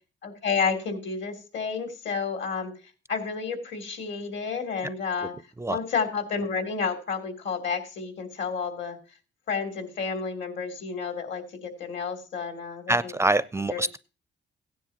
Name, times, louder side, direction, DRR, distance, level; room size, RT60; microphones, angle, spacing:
voice 1, 0.2-2.7 3.1-5.3 5.7-9.0 9.5-13.1 13.7-13.8, left 5 dB, 70° left, 6 dB, 3.0 m, -30 dB
voice 2, 12.9-14.0, right 1 dB, 15° right, 15 dB, 0.4 m, -25 dB
16.0 x 10.0 x 2.9 m, 0.33 s
cardioid pair, 90°, 20 cm